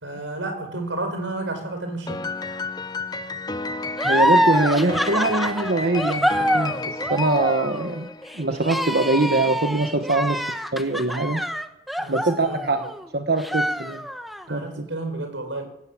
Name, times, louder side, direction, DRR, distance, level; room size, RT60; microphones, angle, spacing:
voice 1, 0.0-2.6 12.0-12.9 14.5-15.6, right 2 dB, 85° right, 6 dB, 5.3 m, -32 dB
Piano, 2.1-8.6, left 3 dB, 20° left, 0.7 m, -32 dB
sound 1, 4.0-13.0 13.4-14.4, equal, ahead, 1.2 m, -25 dB
voice 2, 4.0-8.1 8.3-10.5 10.7-11.4 12.1-12.8 13.1-14.0 14.5-14.9, right 2 dB, 55° right, 6 dB, 1.2 m, -23 dB
18.0 x 17.0 x 8.7 m, 0.84 s
head